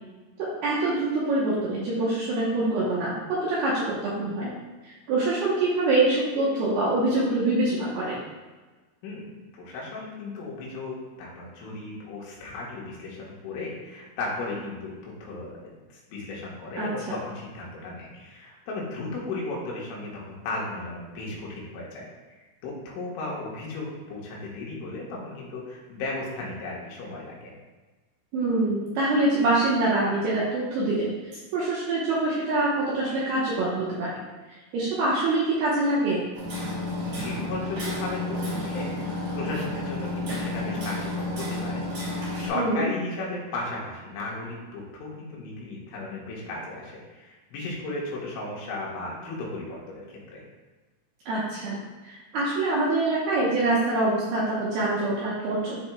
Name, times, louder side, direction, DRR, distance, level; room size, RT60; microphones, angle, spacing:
voice 1, 0.4-4.5 4.9-8.2 16.8-16.9 28.3-31.1 31.5-34.1 34.7-36.2 42.6-42.8 51.3-55.8, right 2 dB, 70° right, -7 dB, 2.4 m, -25 dB
voice 2, 9.5-27.5 37.0-50.4, left 2 dB, 75° left, -4 dB, 3.8 m, -35 dB
Hammer, 36.3-42.5, left 1 dB, 50° right, 3.1 m, -31 dB
12.0 x 4.3 x 2.3 m, 1.2 s
omnidirectional pair, 5.7 m